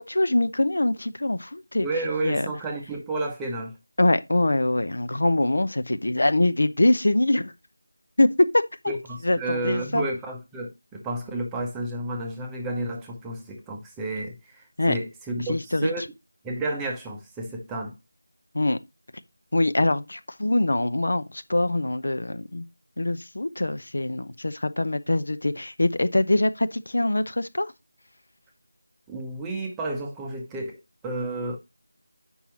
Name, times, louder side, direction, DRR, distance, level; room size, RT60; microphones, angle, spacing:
voice 1, 0.0-1.9 2.2-2.5 4.0-7.5 8.2-8.3 8.5-8.9 9.2-10.0 14.8-15.0 15.5-16.1 18.5-18.8 19.5-22.6 23.0-27.7, left 1 dB, 60° left, 0.7 m, -23 dB
voice 2, 1.8-3.7 8.9-16.0 16.4-17.9 29.1-30.7 31.0-31.6, right 2 dB, 5° right, 0.8 m, -31 dB
8.3 x 5.5 x 3.0 m
figure-of-eight pair, 165°, 0 cm